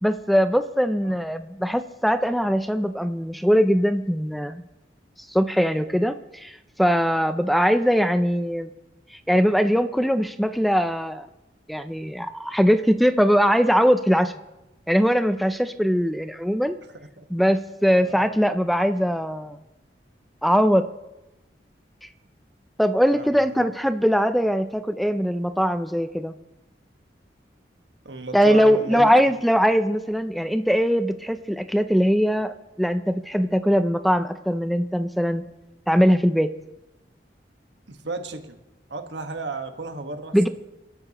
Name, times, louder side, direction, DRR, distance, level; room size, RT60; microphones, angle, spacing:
voice 1, 0.0-4.6 5.3-8.7 9.1-11.3 11.7-14.3 14.9-16.8 17.3-19.6 20.4-20.9 22.8-26.3 28.3-35.4 35.9-36.5 40.3-40.5, equal, ahead, 10 dB, 0.4 m, -21 dB
voice 2, 23.1-23.4 28.0-29.1 37.9-38.6 38.9-40.5, right 3 dB, 80° right, 6 dB, 1.5 m, -34 dB
28.5 x 12.5 x 3.0 m, 0.99 s
head